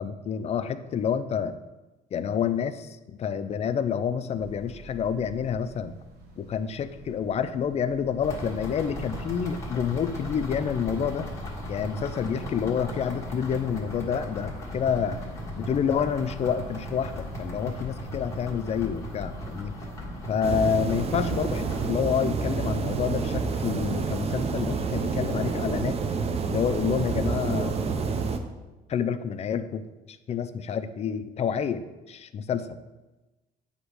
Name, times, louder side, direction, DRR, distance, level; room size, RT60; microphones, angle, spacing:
voice 1, 0.0-1.6 2.1-6.0 6.4-11.3 11.7-15.2 15.6-19.7 20.3-26.0 26.5-27.8 28.9-32.8, left 7 dB, 40° left, 11 dB, 0.4 m, -28 dB
sound 1, 4.3-20.9, right 2 dB, 70° right, 1.2 m, -47 dB
sound 2, 8.2-21.9, equal, 15° left, 1.5 m, -37 dB
sound 3, 20.4-28.4, right 5 dB, 35° right, 0.6 m, -28 dB
8.0 x 2.9 x 4.9 m, 1.1 s
cardioid pair, 110°, 17 cm